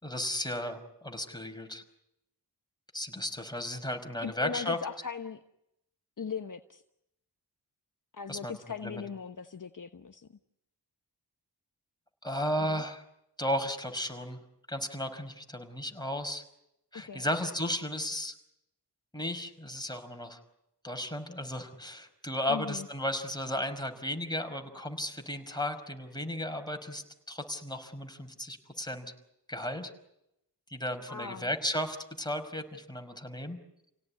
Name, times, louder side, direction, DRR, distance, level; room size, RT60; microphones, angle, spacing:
voice 1, 0.0-1.8 2.9-4.8 8.3-8.5 8.8-9.0 12.2-13.0 13.4-14.4 14.7-16.4 16.9-18.3 19.1-20.4 20.8-29.1 29.5-29.9 30.7-33.6, left 1 dB, 10° left, 4 dB, 5.2 m, -34 dB
voice 2, 4.2-5.4 6.2-6.8 8.1-10.4 12.6-12.8 17.0-17.3 22.5-22.9 31.1-31.5, left 6 dB, 50° left, 7 dB, 1.2 m, -39 dB
30.0 x 18.0 x 9.8 m, 0.84 s
cardioid pair, 45°, 41 cm